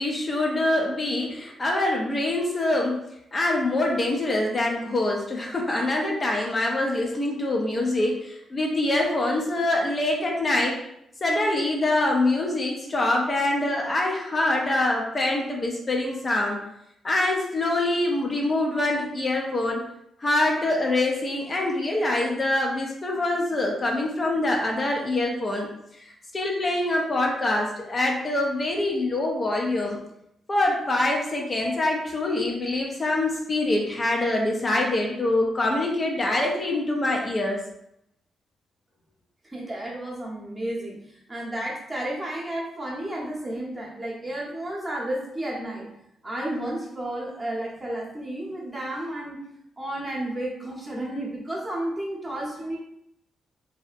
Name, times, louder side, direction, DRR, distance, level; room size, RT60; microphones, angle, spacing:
voice 1, 0.0-3.0 3.3-10.7 11.2-16.6 17.0-19.8 20.2-25.7 25.9-30.0 30.5-37.6, left 2 dB, 35° left, 0 dB, 0.5 m, -25 dB
voice 2, 39.4-46.0 46.2-49.4 49.8-52.8, right 1 dB, 20° right, -4 dB, 0.8 m, -32 dB
2.7 x 2.0 x 2.4 m, 0.77 s
cardioid pair, 70°, 0 cm